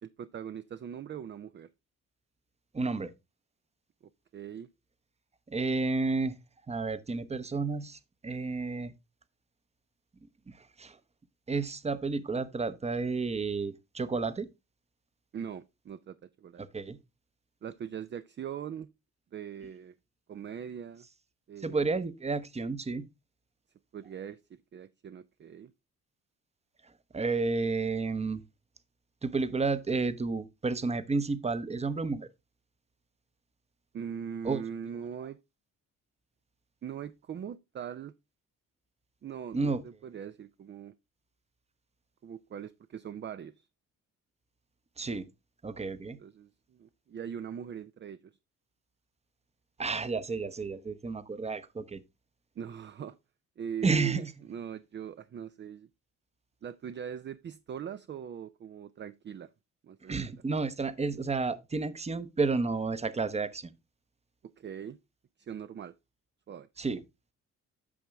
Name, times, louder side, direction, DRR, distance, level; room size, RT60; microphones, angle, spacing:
voice 1, 0.0-1.7 4.3-4.7 15.3-16.6 17.6-18.9 19.3-19.9 20.3-21.1 21.5-21.9 23.9-25.7 33.9-35.4 36.8-38.1 39.2-40.9 42.2-43.7 46.2-48.3 52.6-53.1 53.6-55.9 56.6-59.5 59.8-60.2 64.6-65.0 65.4-65.9 66.5-66.7, right 8 dB, 40° right, 0.5 m, -41 dB
voice 2, 2.7-3.1 5.5-6.3 6.7-8.9 10.5-11.0 11.5-14.5 16.6-17.0 21.6-23.1 27.1-28.4 29.2-32.3 34.4-34.6 39.5-39.8 45.0-45.3 45.6-46.2 49.8-52.0 53.8-54.3 60.1-63.7 66.8-67.0, right 4 dB, 20° right, 0.8 m, -31 dB
8.6 x 6.1 x 3.4 m
cardioid pair, 85°, 30 cm